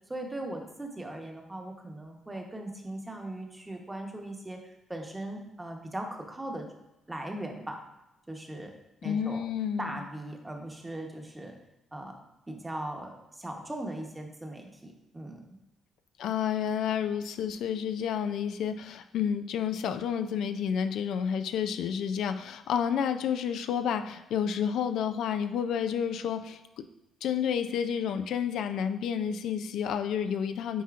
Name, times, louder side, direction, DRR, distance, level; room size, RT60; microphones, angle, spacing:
voice 1, 0.1-6.7 7.1-7.8 8.3-8.7 9.0-9.4 9.8-11.5 11.9-12.2 12.5-15.4, right 1 dB, 15° right, 2 dB, 1.0 m, -39 dB
voice 2, 9.0-9.9 16.2-26.9 27.2-30.8, left 8 dB, 80° left, 9 dB, 0.3 m, -30 dB
9.2 x 4.2 x 2.5 m, 0.95 s
cardioid pair, 90°, 0 cm